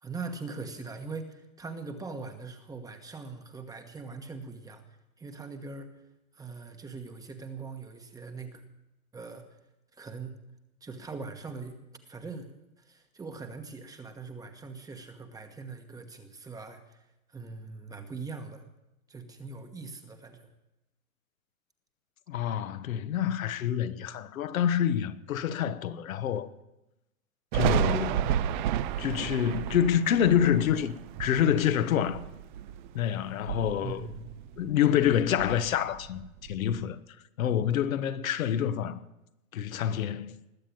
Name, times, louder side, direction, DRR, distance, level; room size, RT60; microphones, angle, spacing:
voice 1, 0.0-4.8 5.2-6.0 6.3-8.6 9.1-9.5 9.9-10.3 10.8-11.8 12.1-17.0 17.3-18.6 19.1-20.5 33.8-34.3, right 4 dB, 10° right, 1.2 m, -41 dB
voice 2, 22.3-26.5 27.5-28.4 29.0-32.2 32.9-34.1 34.6-37.0 37.4-39.0 39.5-40.3, left 9 dB, 70° left, 1.3 m, -27 dB
Thunder, 27.5-33.0 33.3-34.8 35.0-36.8, right 10 dB, 35° right, 0.6 m, -32 dB
20.0 x 7.6 x 8.8 m
hypercardioid pair, 140°, 43 cm